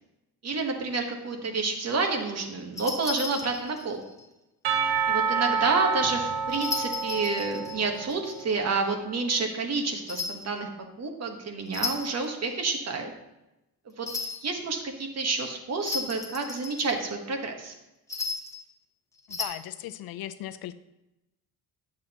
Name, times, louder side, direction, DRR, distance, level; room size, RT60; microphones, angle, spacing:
voice 1, 0.4-4.0 5.1-10.7 11.0-13.1 14.0-17.7, right 4 dB, 40° right, 3 dB, 1.2 m, -29 dB
sound 1, 2.8-4.3 6.5-8.4 10.1-10.5 11.7-12.3 14.1-14.5 15.8-17.1 18.1-18.6 19.2-19.4, left 4 dB, 10° left, 0.8 m, -35 dB
Percussion / Church bell, 4.6-8.6, right 6 dB, 85° right, 1.1 m, -28 dB
voice 2, 19.3-20.8, left 13 dB, 70° left, 13 dB, 0.5 m, -37 dB
10.5 x 7.5 x 2.9 m, 0.94 s
cardioid pair, 135°, 38 cm